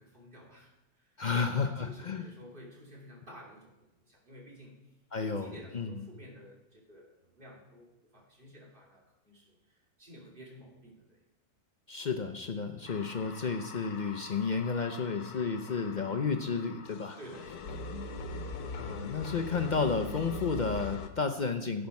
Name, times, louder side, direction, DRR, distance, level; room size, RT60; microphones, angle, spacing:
voice 1, 0.0-4.8 5.2-11.2 12.8-12.9 17.2-17.9, equal, 35° right, -2 dB, 2.8 m, -52 dB
voice 2, 1.2-2.3 5.1-6.0 11.9-17.2 18.8-21.9, left 5 dB, 50° left, 6 dB, 0.5 m, -32 dB
sound 1, 12.9-21.1, left 3 dB, 85° left, 1.4 m, -42 dB
11.5 x 7.8 x 5.3 m, 0.95 s
omnidirectional pair, 1.6 m